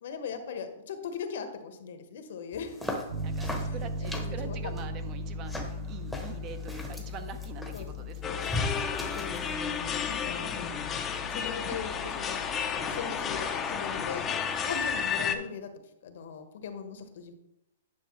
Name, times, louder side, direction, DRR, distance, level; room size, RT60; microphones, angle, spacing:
voice 1, 0.0-2.8 3.6-4.8 5.9-6.1 7.7-8.1 9.1-12.4 12.9-15.7 16.0-17.3, left 6 dB, 65° left, 8 dB, 1.0 m, -40 dB
sound 1, 2.5-9.5, left 2 dB, ahead, 1.0 m, -39 dB
Piano, 3.1-13.4, left 2 dB, 55° right, 0.9 m, -39 dB
voice 2, 3.2-8.4 11.2-11.4, right 6 dB, 30° right, 8 dB, 0.7 m, -44 dB
sound 2, 8.2-15.4, left 7 dB, 20° left, 0.6 m, -32 dB
9.6 x 5.3 x 3.1 m, 0.86 s
hypercardioid pair, 140°, 0 cm